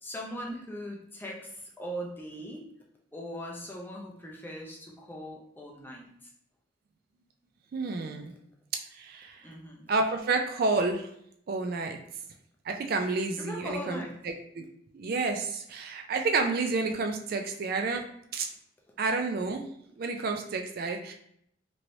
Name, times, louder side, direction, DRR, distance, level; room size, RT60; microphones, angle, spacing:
voice 1, 0.0-1.5 1.8-2.6 3.1-6.1 9.4-9.9 13.4-14.2, equal, 10° left, -2 dB, 0.5 m, -39 dB
voice 2, 7.7-8.3 8.9-9.4 9.9-11.1 11.5-12.0 12.7-14.6 14.9-18.0 18.3-18.5 19.0-19.7 20.0-21.1, right 3 dB, 50° right, 4 dB, 0.3 m, -30 dB
3.0 x 2.9 x 2.6 m, 0.70 s
head